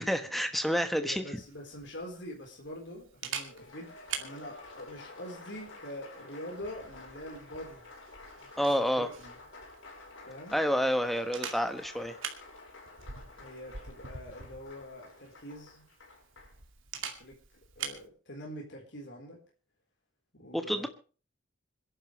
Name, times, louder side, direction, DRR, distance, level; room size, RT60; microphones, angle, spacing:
voice 1, 0.0-1.2 8.6-9.1 10.5-12.2 20.5-20.9, equal, ahead, 7 dB, 1.2 m, -29 dB
voice 2, 1.0-7.9 8.4-9.3 10.3-10.6 13.4-15.8 16.9-17.4 17.8-19.4 20.4-20.9, equal, 60° left, -1 dB, 4.2 m, -45 dB
Camera, 1.4-18.1, right 7 dB, 90° right, 2.4 m, -46 dB
Applause, 3.3-16.6, left 2 dB, 80° left, 5.4 m, -51 dB
26.5 x 11.0 x 3.2 m, 0.38 s
head